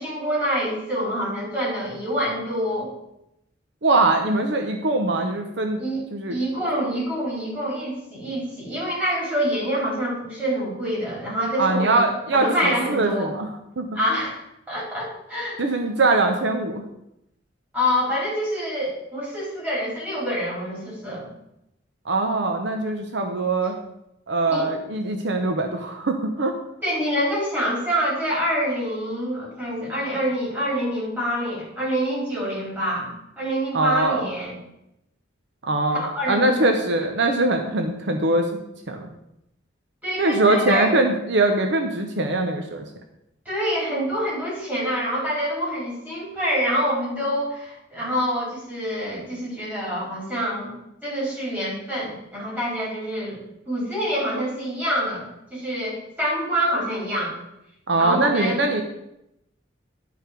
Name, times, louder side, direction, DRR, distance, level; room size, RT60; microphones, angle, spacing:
voice 1, 0.0-2.9 5.8-12.1 12.3-13.3 13.9-14.4 14.7-15.6 17.7-21.3 24.5-24.7 26.8-33.1 33.4-34.6 35.9-36.6 40.0-41.0 43.5-50.7 51.0-53.4 53.7-55.3 55.5-57.3 58.0-58.7, equal, 10° right, -6 dB, 4.0 m, -26 dB
voice 2, 3.8-5.8 6.1-6.4 11.6-13.5 13.8-13.9 15.6-16.8 22.1-23.8 24.3-26.5 33.7-34.3 35.6-38.6 38.9-39.1 40.2-42.8 57.9-58.8, right 2 dB, 65° right, 4 dB, 0.8 m, -22 dB
11.0 x 4.7 x 5.1 m, 0.84 s
head